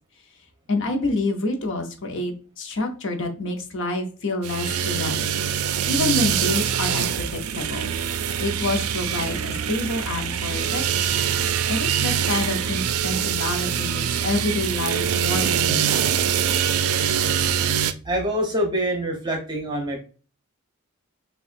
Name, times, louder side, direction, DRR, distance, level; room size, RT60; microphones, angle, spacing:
voice 1, 0.7-5.2 5.9-7.9 8.4-10.8 11.7-16.1, left 2 dB, 60° left, 4 dB, 0.8 m, -27 dB
sound 1, 4.4-17.9, right 8 dB, 75° right, 0.4 m, -24 dB
voice 2, 18.0-20.0, equal, 20° right, 1 dB, 0.9 m, -25 dB
6.4 x 2.3 x 2.5 m, 0.37 s
head